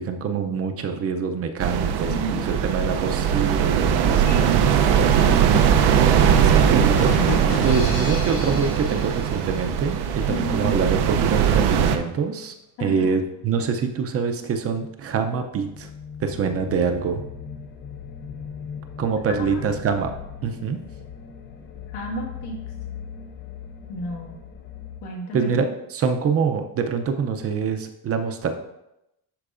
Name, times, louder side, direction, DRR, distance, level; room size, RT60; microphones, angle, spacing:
voice 1, 0.0-4.3 6.3-7.2 7.6-12.5 12.8-15.9 16.2-17.2 19.0-20.2 20.4-20.8 25.3-25.7 25.9-28.5, right 5 dB, 40° right, 6 dB, 0.6 m, -25 dB
sound 1, 1.6-12.0, right 8 dB, 90° right, 0.7 m, -20 dB
voice 2, 2.1-2.9 4.3-7.0 10.3-10.8 12.8-13.2 19.4-19.6 21.9-22.6 23.9-24.4 25.0-25.6, equal, 85° left, -1 dB, 1.9 m, -33 dB
sound 2, 6.3-10.0, left 2 dB, 70° left, 1.9 m, -32 dB
sound 3, 15.5-25.0, left 7 dB, 30° left, 0.4 m, -39 dB
11.5 x 4.5 x 2.5 m, 0.86 s
cardioid pair, 155°, 38 cm